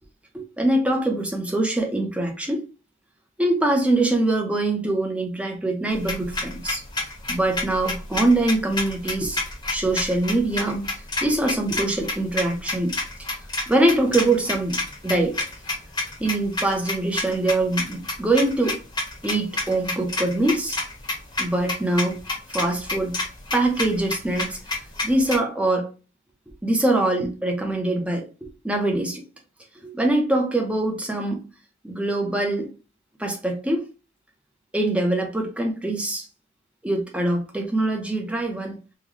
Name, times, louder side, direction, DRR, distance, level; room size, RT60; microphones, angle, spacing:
voice 1, 0.3-2.7 3.4-6.8 7.3-9.4 9.7-10.9 11.2-12.9 13.7-14.8 15.0-15.3 16.2-18.8 19.2-20.8 21.4-22.2 22.5-23.1 23.5-24.6 25.0-25.9 26.6-28.3 28.6-29.2 29.8-31.4 31.8-32.7 33.2-33.8 34.7-36.3 36.8-38.8, right 2 dB, 5° right, 0.6 m, -23 dB
sound 1, 5.9-25.4, left 2 dB, 20° left, 0.9 m, -29 dB
3.8 x 2.2 x 3.1 m
head